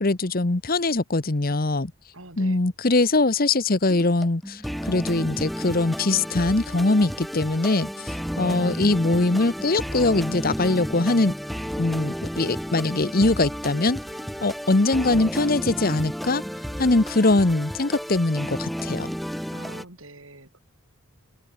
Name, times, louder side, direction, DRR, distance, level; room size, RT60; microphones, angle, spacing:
voice 1, 0.0-1.9 2.4-11.3 11.8-14.0 14.4-16.4 16.8-19.1, left 2 dB, 45° left, 1.1 m, -22 dB
voice 2, 2.1-2.6 19.5-20.6, right 2 dB, 75° right, 6.8 m, -44 dB
sound 1, 3.9-19.8, equal, ahead, 1.0 m, -32 dB
open air
head